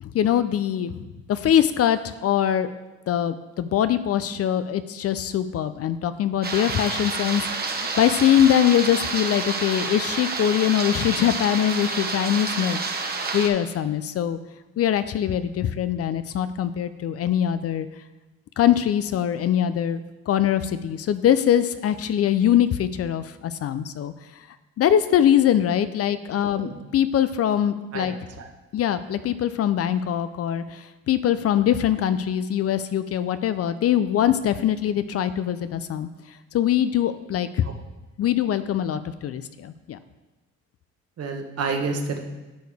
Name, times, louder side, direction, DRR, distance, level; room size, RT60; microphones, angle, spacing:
voice 1, 0.0-2.7 3.1-14.4 14.8-17.9 18.6-20.0 20.3-24.1 24.8-28.1 28.7-36.1 36.5-37.7 38.2-40.0, left 10 dB, 55° left, 13 dB, 0.4 m, -23 dB
sound 1, 6.4-13.5, right 4 dB, 30° right, 1.0 m, -29 dB
voice 2, 27.9-28.5 37.6-37.7 41.2-42.2, right 4 dB, 55° right, 4 dB, 1.1 m, -29 dB
10.5 x 4.8 x 3.5 m, 1.1 s
cardioid pair, 90°, 30 cm